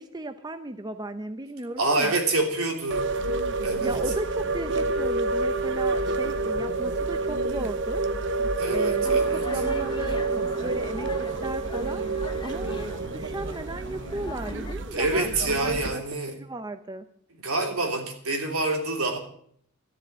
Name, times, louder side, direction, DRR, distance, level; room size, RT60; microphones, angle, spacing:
voice 1, 0.0-2.1 3.8-8.1 8.7-12.0 12.4-15.3 15.6-16.0 16.3-17.1, right 2 dB, 20° right, 9 dB, 0.6 m, -36 dB
voice 2, 1.8-3.1 3.6-3.9 8.6-9.5 14.9-16.4 17.4-19.2, right 2 dB, 75° right, 2 dB, 3.4 m, -26 dB
sound 1, 2.9-15.9, right 3 dB, 55° right, 1.0 m, -28 dB
sound 2, 9.0-14.8, left 2 dB, 20° left, 1.0 m, -40 dB
13.5 x 11.0 x 7.3 m, 0.63 s
head